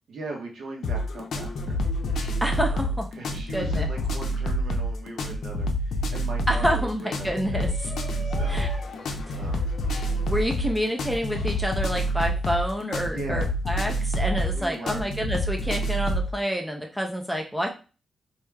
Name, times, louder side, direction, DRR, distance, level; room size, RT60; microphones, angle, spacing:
voice 1, 0.1-1.8 2.7-2.9 3.1-6.9 7.2-7.7 8.2-9.0 9.3-9.6 13.1-13.5 14.5-15.0, right 2 dB, 70° right, 0 dB, 1.0 m, -39 dB
sound 1, 0.8-16.3, equal, 75° left, 0.5 m, -27 dB
voice 2, 2.4-3.1 3.5-3.9 6.5-7.7 8.5-8.7 9.3-9.4 10.3-17.7, equal, ahead, 1 dB, 0.4 m, -28 dB
Shout, 7.3-12.4, left 1 dB, 35° left, 0.8 m, -44 dB
4.7 x 2.7 x 2.2 m, 0.33 s
wide cardioid pair, 165°, 0 cm